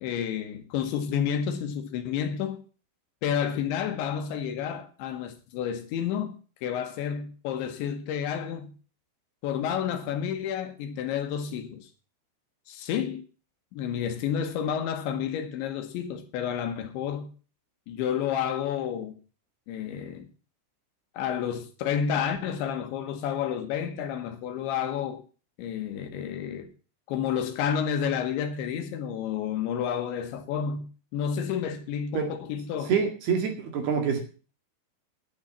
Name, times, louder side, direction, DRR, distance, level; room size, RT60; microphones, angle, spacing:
voice 1, 0.0-2.6 3.2-6.4 6.6-8.7 9.4-11.9 12.7-13.2 13.7-17.3 17.9-19.2 19.7-20.3 21.1-25.2 25.6-26.7 27.1-32.9, left 8 dB, 75° left, 3.2 m, -30 dB
voice 2, 32.9-34.2, right 6 dB, 60° right, 3.5 m, -26 dB
10.5 x 9.4 x 7.1 m
omnidirectional pair, 5.8 m